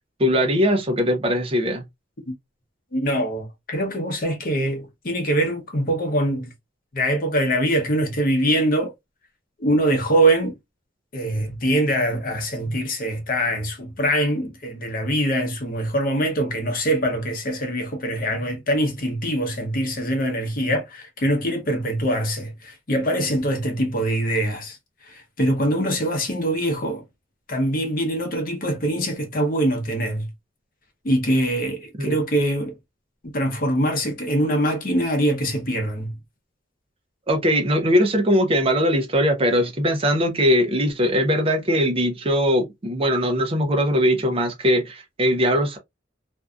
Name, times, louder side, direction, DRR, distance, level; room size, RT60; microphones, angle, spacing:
voice 1, 0.2-1.8 32.0-32.2 37.3-45.8, equal, 30° right, 0.5 m, -20 dB
voice 2, 2.9-6.5 6.9-8.9 9.6-10.6 11.1-24.8 25.0-27.0 27.5-30.3 31.0-32.8 33.2-36.1, right 1 dB, 50° left, 0.8 m, -23 dB
2.6 x 2.3 x 2.3 m
head